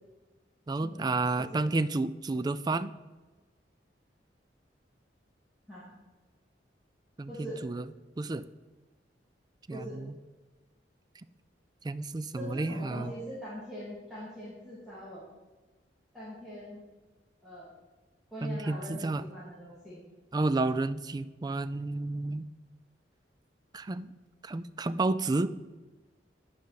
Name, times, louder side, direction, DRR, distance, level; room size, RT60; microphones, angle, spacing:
voice 1, 0.7-2.9 7.2-7.9 8.2-8.5 9.7-10.2 11.8-13.1 18.4-19.2 20.3-22.5 23.7-24.1 24.4-25.7, right 3 dB, 20° right, 14 dB, 0.3 m, -31 dB
voice 2, 7.3-7.6 9.7-10.0 12.3-15.2 16.1-16.8 17.4-17.7 18.3-20.0, equal, ahead, -11 dB, 2.7 m, -42 dB
9.4 x 5.2 x 6.8 m, 1.2 s
head